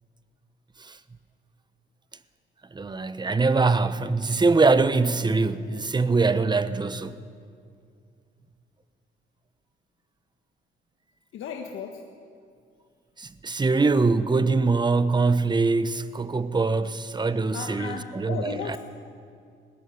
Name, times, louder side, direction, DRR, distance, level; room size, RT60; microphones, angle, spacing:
voice 1, 2.7-7.2 13.2-18.8, right 3 dB, 20° right, 1.0 m, -23 dB
voice 2, 11.3-12.0 17.5-18.8, left 7 dB, 80° left, 1.5 m, -35 dB
20.0 x 15.5 x 9.5 m
cardioid pair, 90°, 20 cm